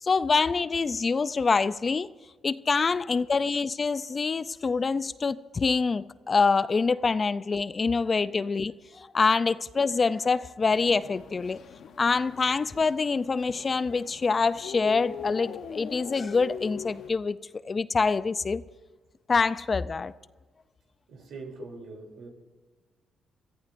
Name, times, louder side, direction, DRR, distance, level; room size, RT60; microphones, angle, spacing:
voice 1, 0.0-2.1 2.4-11.6 12.0-18.6 19.3-20.1, left 4 dB, 35° left, 0.4 m, -25 dB
sound 1, 10.6-17.1, left 8 dB, 70° left, 0.9 m, -42 dB
voice 2, 21.1-22.3, right 3 dB, 75° right, 3.3 m, -43 dB
25.5 x 14.5 x 2.6 m
cardioid pair, 90°, 0 cm